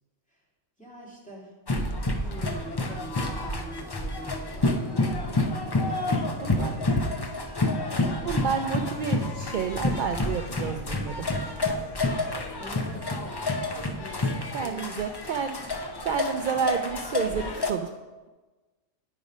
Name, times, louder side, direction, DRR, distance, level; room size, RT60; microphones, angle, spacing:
voice 1, 0.8-1.5 2.2-4.8 5.7-7.0 12.6-13.5 13.8-15.0, right 1 dB, 5° left, -5 dB, 2.3 m, -44 dB
sound 1, 1.7-17.7, left 2 dB, 30° left, 0.5 m, -29 dB
voice 2, 6.4-6.7 8.3-11.3 14.5-15.6 16.0-17.9, right 6 dB, 65° right, 6 dB, 0.5 m, -30 dB
9.6 x 5.3 x 4.9 m, 1.2 s
omnidirectional pair, 1.3 m